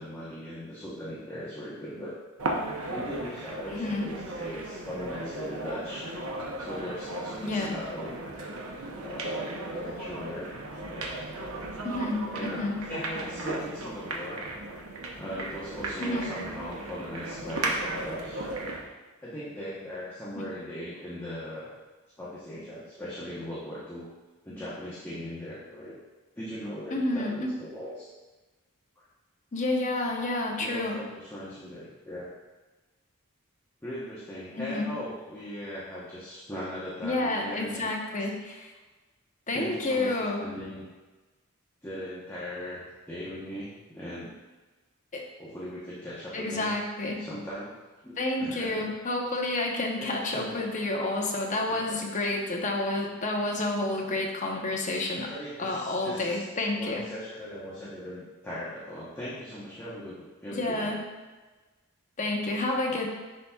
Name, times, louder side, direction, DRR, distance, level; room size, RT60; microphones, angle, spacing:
voice 1, 0.0-2.1 2.9-6.1 6.6-8.2 9.0-10.5 10.8-11.1 11.8-14.4 15.2-18.4 19.2-21.7 22.2-24.1 24.4-26.0 26.3-28.1 29.0-29.1 30.6-32.3 33.8-37.9 39.5-40.9 41.8-44.3 45.4-46.7 47.2-47.8 48.0-48.8 50.0-50.6 51.7-52.0 55.2-56.4 56.8-60.9, equal, 10° left, -9 dB, 1.0 m, -39 dB
sound 1, 2.4-18.9, right 2 dB, 75° right, 0.8 m, -36 dB
voice 2, 3.7-4.1 7.4-7.7 11.8-12.8 16.0-16.3 26.9-27.5 29.5-31.0 34.6-34.9 37.0-38.7 39.5-40.5 45.1-45.2 46.3-47.2 48.2-55.3 55.6-57.0 60.5-61.0 62.2-63.1, left 2 dB, 35° left, 0 dB, 0.9 m, -29 dB
9.9 x 4.1 x 2.4 m, 1.2 s
head